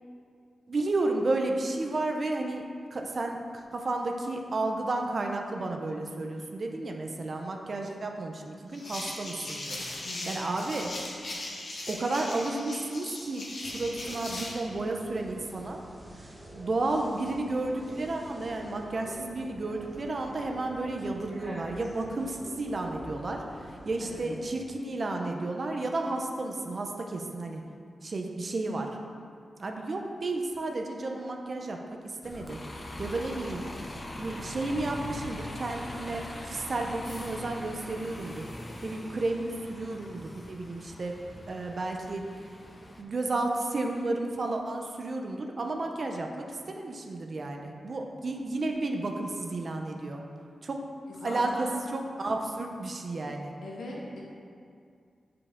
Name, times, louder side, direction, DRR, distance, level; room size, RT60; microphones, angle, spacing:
voice 1, 0.7-9.8 10.3-10.9 11.9-15.8 16.5-23.4 23.9-27.6 28.0-28.9 29.6-32.6 33.0-33.6 34.2-38.5 38.8-42.3 43.0-50.2 50.6-50.9 51.2-53.5, right 2 dB, 40° right, 2 dB, 0.6 m, -32 dB
sound 1, 8.7-14.6, left 1 dB, 50° left, 1.0 m, -39 dB
voice 2, 10.0-10.4 24.0-24.2 51.1-51.7 53.6-54.2, left 1 dB, 90° left, -4 dB, 1.4 m, -40 dB
sound 2, 13.6-24.4, right 1 dB, 10° right, 0.9 m, -47 dB
Bus, 32.2-43.0, left 1 dB, 25° left, 0.6 m, -42 dB
9.0 x 4.8 x 3.6 m, 2.3 s
wide cardioid pair, 170°, 0 cm